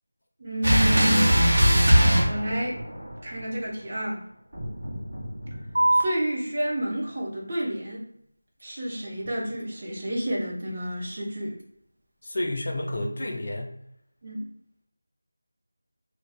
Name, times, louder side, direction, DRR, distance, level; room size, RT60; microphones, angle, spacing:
voice 1, 0.4-1.3 2.2-2.8 3.2-4.3 6.0-8.0 8.6-11.6 14.2-14.5, right 1 dB, 30° right, -3 dB, 0.5 m, -29 dB
sound 1, 0.6-3.1 4.5-5.8, equal, 60° right, 1.2 m, -21 dB
sound 2, 5.8-12.8, right 1 dB, 85° right, 0.7 m, -33 dB
voice 2, 12.2-13.7, left 1 dB, 45° left, 2 dB, 0.4 m, -30 dB
2.6 x 2.0 x 3.3 m, 0.73 s
figure-of-eight pair, 175°, 0 cm